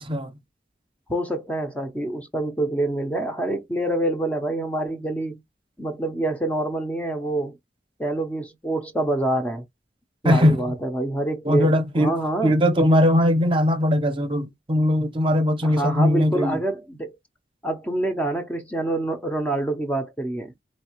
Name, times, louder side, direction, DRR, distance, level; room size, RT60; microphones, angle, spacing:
voice 1, 0.0-0.3 10.2-10.6 11.4-12.1 12.4-16.6, left 1 dB, 30° right, 0.8 m, -20 dB
voice 2, 1.1-5.4 5.8-7.5 8.0-9.6 10.2-12.6 15.6-17.1 17.6-20.5, right 1 dB, 10° left, 0.7 m, -26 dB
4.3 x 3.1 x 3.0 m
head